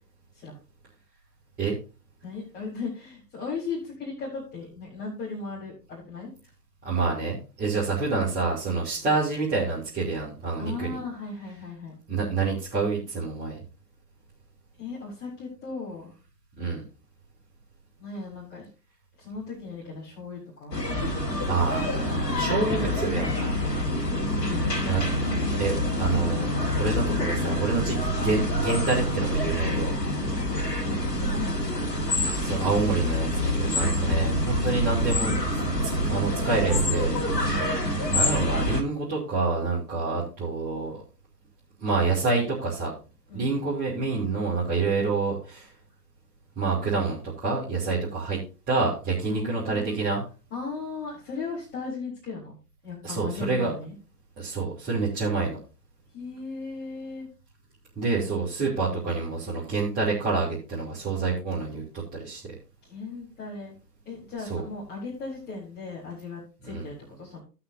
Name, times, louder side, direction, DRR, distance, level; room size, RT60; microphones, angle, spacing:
voice 1, 2.2-6.3 10.6-12.0 14.8-16.1 18.0-18.7 19.2-20.8 21.1-21.4 23.7-24.1 24.3-24.9 30.9-31.9 34.0-34.4 37.3-37.8 43.3-43.6 49.2-50.0 50.5-52.6 52.8-53.9 56.1-57.3 62.8-63.7 64.0-67.4, left 4 dB, 20° left, -6 dB, 4.1 m, -37 dB
voice 2, 6.8-11.0 12.1-13.6 16.6-16.8 21.4-23.6 24.8-25.0 25.6-29.9 32.4-35.4 36.0-37.6 38.1-41.0 41.8-42.9 43.3-45.7 46.6-48.4 48.7-50.2 53.0-53.7 54.4-55.6 58.0-61.8 62.1-62.4 64.5-64.6 66.6-66.8, right 4 dB, 15° right, -7 dB, 2.8 m, -27 dB
sound 1, 20.7-38.8, left 1 dB, 80° left, 2.1 m, -26 dB
18.0 x 6.0 x 2.7 m, 0.33 s
figure-of-eight pair, 125°, 48 cm